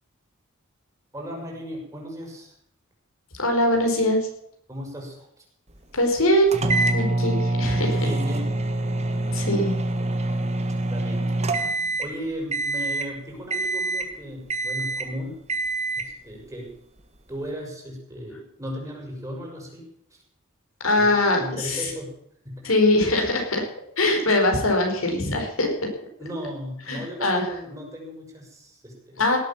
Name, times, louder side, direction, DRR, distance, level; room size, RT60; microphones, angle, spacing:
voice 1, 1.1-2.5 4.7-5.4 8.0-8.5 10.9-11.3 12.0-15.4 15.9-16.8 17.3-19.8 20.1-20.2 21.0-22.1 22.4-22.6 26.2-29.2, equal, 15° right, -1 dB, 5.8 m, -36 dB
voice 2, 3.3-4.2 5.9-6.5 6.9-8.1 9.3-9.8 20.8-21.9 22.6-23.7 24.0-25.9 26.9-27.4 29.2-29.4, left 1 dB, 80° left, 2 dB, 4.7 m, -22 dB
sound 1, 6.5-12.2 12.5-13.1 13.5-14.2 14.5-15.1 15.5-16.1, right 2 dB, 30° right, 1.7 m, -25 dB
18.0 x 8.5 x 7.3 m, 0.71 s
head